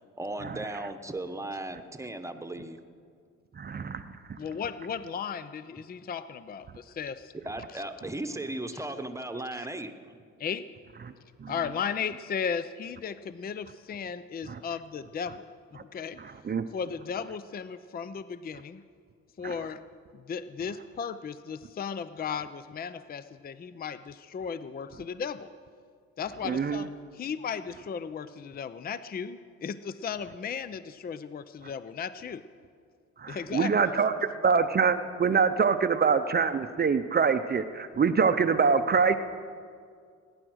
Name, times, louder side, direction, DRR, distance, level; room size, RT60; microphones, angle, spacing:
voice 1, 0.2-2.8 7.4-9.9, right 1 dB, 10° right, 8 dB, 1.1 m, -36 dB
voice 2, 3.6-4.0 11.4-11.5 14.5-14.6 16.2-16.6 19.4-19.5 26.4-26.9 33.2-39.1, right 5 dB, 35° right, 10 dB, 0.6 m, -25 dB
voice 3, 4.4-7.3 9.6-9.7 10.4-10.7 11.5-15.5 15.8-16.2 16.7-18.8 19.4-19.8 20.3-25.5 26.2-32.4 33.3-33.7, left 6 dB, 30° left, 14 dB, 0.5 m, -35 dB
19.5 x 10.0 x 6.3 m, 2.2 s
cardioid pair, 90°, 30 cm